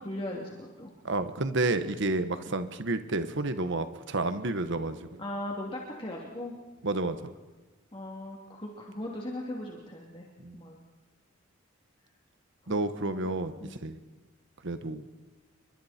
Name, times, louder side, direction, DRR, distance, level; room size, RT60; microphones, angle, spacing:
voice 1, 0.0-0.9 5.2-6.6 7.9-10.3 10.5-10.8 12.6-13.3 13.6-13.7, left 1 dB, 25° left, -2 dB, 2.9 m, -38 dB
voice 2, 1.0-5.1 6.8-7.2 10.4-10.6 12.7-14.0 14.6-15.0, right 2 dB, 65° right, 10 dB, 1.3 m, -30 dB
29.5 x 24.0 x 4.4 m, 1.3 s
head